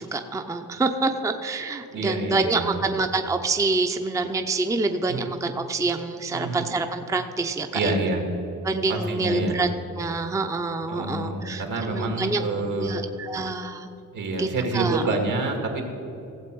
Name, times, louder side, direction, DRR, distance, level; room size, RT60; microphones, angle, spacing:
voice 1, 0.0-7.9 8.6-9.7 10.0-11.6 11.9-12.4 12.8-13.9 14.4-14.5 14.7-15.0, right 3 dB, 10° right, 6 dB, 0.5 m, -26 dB
voice 2, 1.9-3.0 5.1-5.2 6.3-6.7 7.7-8.3 8.9-9.6 10.9-13.1 14.1-15.8, right 2 dB, 75° right, 2 dB, 2.1 m, -27 dB
16.0 x 7.7 x 4.6 m, 2.9 s
cardioid pair, 120°, 31 cm